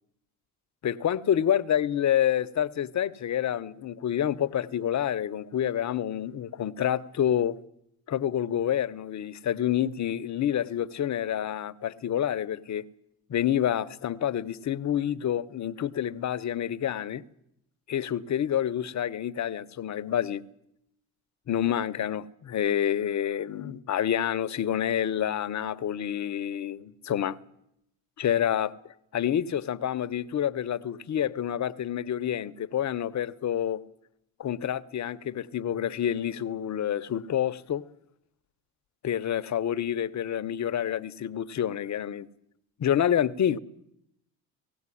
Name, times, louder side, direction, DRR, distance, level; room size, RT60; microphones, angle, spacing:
voice 1, 0.8-7.6 8.1-12.9 13.3-17.2 17.9-20.4 21.5-27.3 28.2-28.7 29.1-33.8 34.4-37.8 39.0-42.3 42.8-43.6, left 10 dB, 40° left, 1.1 m, -28 dB
18.5 x 16.0 x 10.0 m
hypercardioid pair, 75°, 43 cm